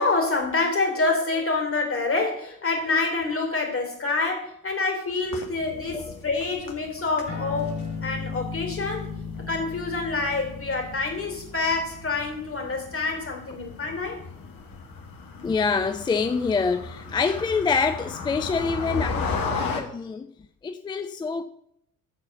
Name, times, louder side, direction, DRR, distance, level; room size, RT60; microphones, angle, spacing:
voice 1, 0.0-9.1 9.5-14.2, left 3 dB, 30° left, 3.6 m, -27 dB
sound 1, 5.2-19.8, left 4 dB, 45° left, 2.1 m, -36 dB
sound 2, 7.3-14.1, left 5 dB, 70° left, 4.5 m, -37 dB
voice 2, 15.4-20.3 20.6-21.4, left 5 dB, 10° left, 0.3 m, -26 dB
12.5 x 4.8 x 6.6 m
figure-of-eight pair, 55°, 47 cm